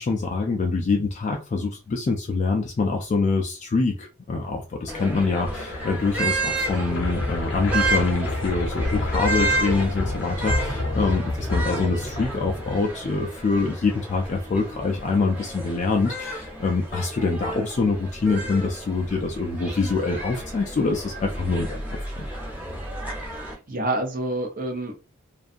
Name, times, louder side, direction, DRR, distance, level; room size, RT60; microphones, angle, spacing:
voice 1, 0.0-21.8 22.2-22.3, left 3 dB, 35° left, 1 dB, 0.3 m, -25 dB
sound 1, 4.9-23.5, right 2 dB, 10° right, 0.8 m, -32 dB
sound 2, 5.1-13.1, left 2 dB, 65° left, 0.7 m, -29 dB
voice 2, 23.2-24.9, right 2 dB, 45° right, 2 dB, 0.7 m, -28 dB
2.6 x 2.3 x 2.4 m, 0.31 s
head